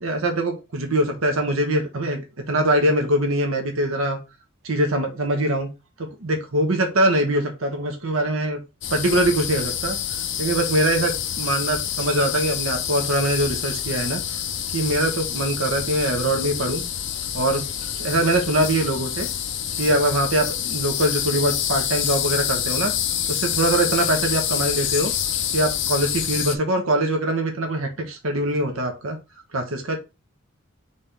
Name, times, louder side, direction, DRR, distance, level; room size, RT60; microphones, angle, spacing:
voice 1, 0.0-2.2 2.5-4.2 4.6-5.7 6.0-8.6 8.9-10.0 10.4-14.2 14.7-16.8 17.3-19.3 19.8-22.9 23.3-25.1 25.5-29.2 29.5-30.0, right 1 dB, 90° right, 4 dB, 1.0 m, -23 dB
sound 1, 8.8-26.6, left 9 dB, 60° left, 0.5 m, -27 dB
4.1 x 3.4 x 3.4 m, 0.28 s
head